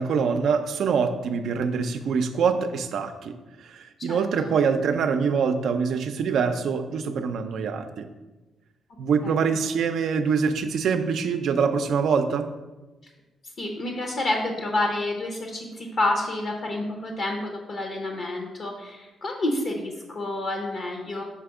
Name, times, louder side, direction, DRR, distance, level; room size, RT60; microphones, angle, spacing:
voice 1, 0.0-8.1 9.0-12.5, right 6 dB, 75° right, 7 dB, 0.4 m, -24 dB
voice 2, 4.0-4.5 9.2-9.5 13.6-21.2, left 2 dB, 55° left, 1 dB, 0.8 m, -29 dB
5.8 x 3.4 x 4.8 m, 1.1 s
cardioid pair, 95°, 0 cm